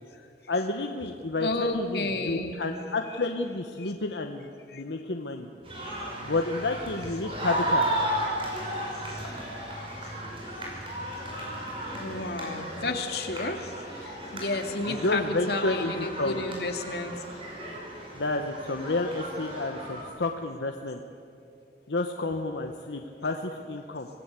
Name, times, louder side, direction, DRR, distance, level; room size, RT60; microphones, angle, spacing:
voice 1, 0.2-5.5 6.2-7.9 14.9-16.5 18.1-21.0 21.9-24.1, left 2 dB, 85° left, 4 dB, 1.2 m, -30 dB
voice 2, 1.4-2.5 3.8-3.9 4.7-4.8 9.1-9.2 9.8-10.0 11.9-17.2, left 2 dB, 65° left, 4 dB, 2.3 m, -32 dB
sound 1, 5.6-20.0, right 1 dB, 30° right, 5.6 m, -34 dB
25.5 x 17.0 x 8.3 m, 2.6 s
head